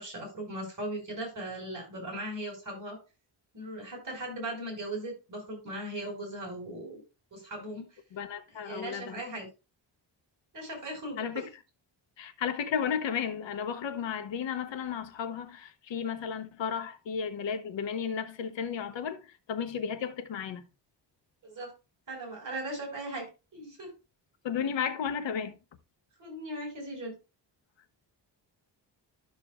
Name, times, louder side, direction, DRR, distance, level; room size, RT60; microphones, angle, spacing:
voice 1, 0.0-3.0 3.5-7.0 7.3-7.9 8.6-9.5 10.5-11.5 21.4-21.7 22.1-23.3 23.5-23.9 26.2-27.2, right 1 dB, 45° right, 5.0 m, -38 dB
voice 2, 8.1-9.2 11.2-11.5 12.2-20.6 24.4-25.5, left 7 dB, 85° left, 1.0 m, -33 dB
12.0 x 6.7 x 2.4 m
wide cardioid pair, 150°, 44 cm